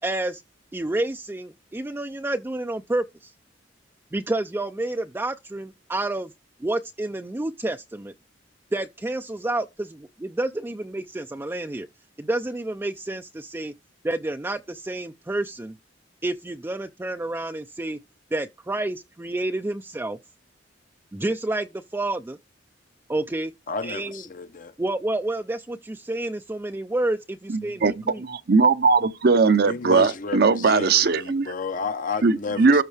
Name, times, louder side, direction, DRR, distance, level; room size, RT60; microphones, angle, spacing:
voice 1, 0.0-0.4 0.7-3.3 4.1-6.3 6.6-8.1 8.7-9.9 10.2-11.9 12.2-13.7 14.0-15.7 16.2-18.0 18.3-20.2 21.1-21.7 21.9-22.4 23.1-23.5 23.8-24.2 24.8-28.2, right 2 dB, 15° right, 0.4 m, -29 dB
voice 2, 23.7-24.7 29.6-32.8, left 4 dB, 45° left, 0.7 m, -32 dB
voice 3, 27.5-31.5 32.2-32.8, right 4 dB, 55° right, 0.7 m, -20 dB
13.5 x 4.5 x 3.3 m
head